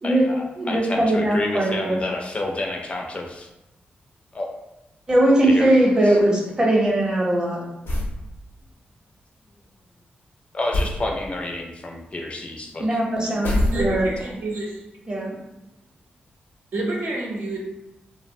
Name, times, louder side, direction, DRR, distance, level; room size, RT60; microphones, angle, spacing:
voice 1, 0.0-3.5 4.3-4.5 5.4-5.8 6.0-6.2 10.5-13.0, left 2 dB, 35° left, 1 dB, 0.4 m, -29 dB
voice 2, 0.6-2.0 5.1-7.6 12.8-14.1 15.1-15.3, right 1 dB, 25° right, -2 dB, 0.7 m, -20 dB
sound 1, 7.8-8.2 10.7-11.0 13.4-14.2, left 1 dB, 80° left, 0.6 m, -23 dB
voice 3, 13.7-14.8 16.7-17.6, right 2 dB, 70° right, -2 dB, 0.6 m, -28 dB
2.8 x 2.0 x 2.6 m, 0.92 s
cardioid pair, 95°, 4 cm